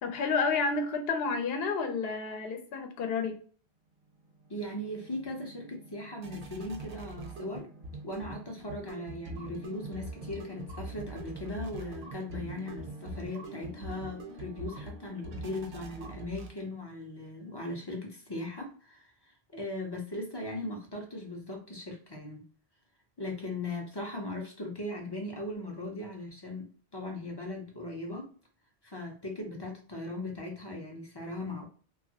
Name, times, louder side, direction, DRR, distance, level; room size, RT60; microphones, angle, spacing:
voice 1, 0.0-3.4, left 4 dB, 70° left, 5 dB, 0.8 m, -30 dB
sound 1, 4.1-16.9, right 2 dB, 75° right, 0.9 m, -44 dB
voice 2, 4.5-7.7 8.0-22.4 23.2-28.3 28.8-31.7, left 2 dB, 30° left, 0 dB, 0.5 m, -39 dB
2.9 x 2.3 x 2.7 m, 0.42 s
omnidirectional pair, 1.1 m